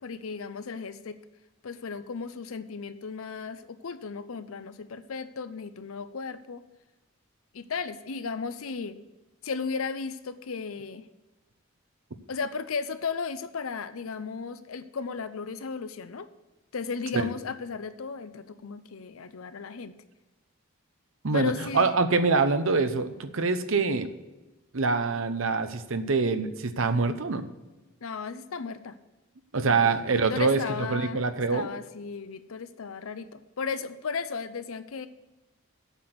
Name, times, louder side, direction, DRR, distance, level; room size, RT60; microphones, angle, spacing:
voice 1, 0.0-1.2 1.6-6.6 7.5-9.0 9.4-11.1 12.3-16.3 16.7-20.0 21.3-21.9 28.0-29.0 29.6-29.9 30.1-31.2 31.5-35.1, left 5 dB, 75° left, 13 dB, 0.6 m, -35 dB
voice 2, 21.2-24.1 24.7-27.5 29.5-31.7, right 4 dB, 65° right, 10 dB, 0.8 m, -25 dB
8.2 x 6.0 x 8.0 m, 1.1 s
head